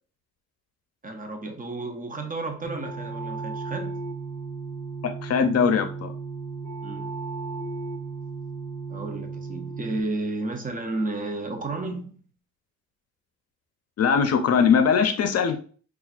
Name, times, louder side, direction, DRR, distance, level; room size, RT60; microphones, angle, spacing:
voice 1, 1.0-4.0 6.8-7.2 8.9-12.2, right 2 dB, 25° right, 0.8 m, -32 dB
sound 1, 2.6-10.0, right 4 dB, 5° left, 0.7 m, -35 dB
voice 2, 5.0-6.1 14.0-15.6, left 6 dB, 55° left, 0.6 m, -21 dB
5.6 x 2.4 x 2.4 m
cardioid pair, 90°, 30 cm